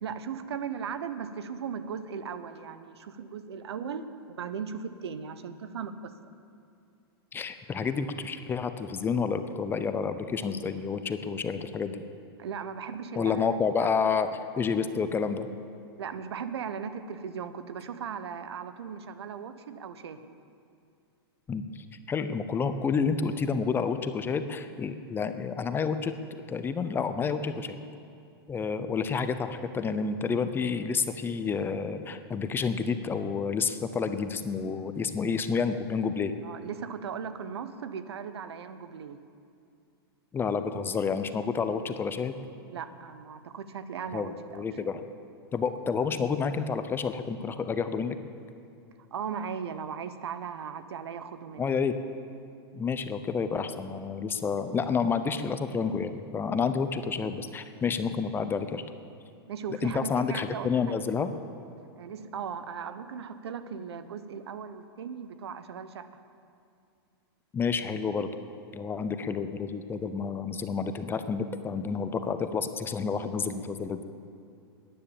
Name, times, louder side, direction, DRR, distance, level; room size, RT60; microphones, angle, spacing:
voice 1, 0.0-6.1 12.4-13.5 13.8-13.9 16.0-20.3 36.4-39.2 42.7-44.7 49.1-51.7 59.5-60.8 62.0-66.1, right 7 dB, 80° right, 11 dB, 0.9 m, -37 dB
voice 2, 7.3-12.0 13.2-15.5 21.5-27.8 28.5-36.3 40.3-42.3 44.1-45.0 45.5-48.2 51.6-51.9 52.7-58.8 59.8-61.3 67.5-68.3 68.7-74.0, left 5 dB, 15° left, 10 dB, 0.7 m, -29 dB
13.5 x 10.0 x 7.2 m, 2.5 s
hypercardioid pair, 125°, 14 cm